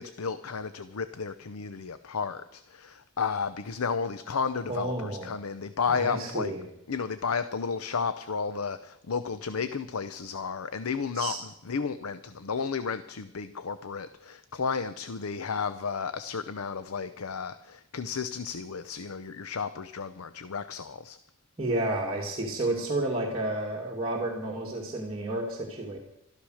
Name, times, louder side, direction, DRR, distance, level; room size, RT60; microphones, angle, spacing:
voice 1, 0.0-6.5 6.9-21.2, left 5 dB, 75° left, 12 dB, 0.7 m, -33 dB
voice 2, 4.7-5.3 5.9-6.6 11.1-11.4 21.6-26.0, right 2 dB, 25° right, -4 dB, 2.3 m, -31 dB
13.5 x 13.0 x 6.4 m, 0.82 s
head